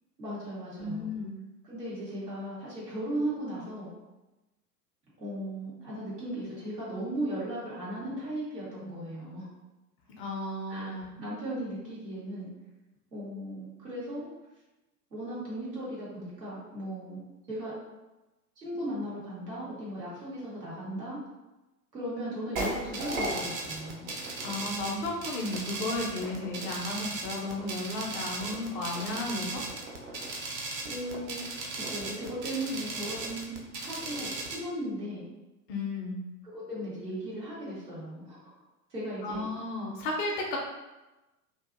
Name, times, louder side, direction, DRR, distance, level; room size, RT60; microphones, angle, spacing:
voice 1, 0.2-1.1 1.6-3.9 5.2-9.5 10.7-12.5 13.1-14.3 15.1-17.2 17.5-17.7 18.6-21.2 21.9-24.1 30.8-31.4 31.7-35.3 36.5-38.5 38.9-39.5, right 1 dB, 85° right, -8 dB, 1.4 m, -37 dB
voice 2, 0.8-1.4 10.1-11.1 24.4-29.6 35.7-36.2 39.2-40.6, left 2 dB, 35° left, 0 dB, 0.5 m, -34 dB
sound 1, 22.6-34.6, right 2 dB, 30° right, 0.4 m, -36 dB
2.6 x 2.5 x 2.4 m, 1.0 s
figure-of-eight pair, 90°, 48 cm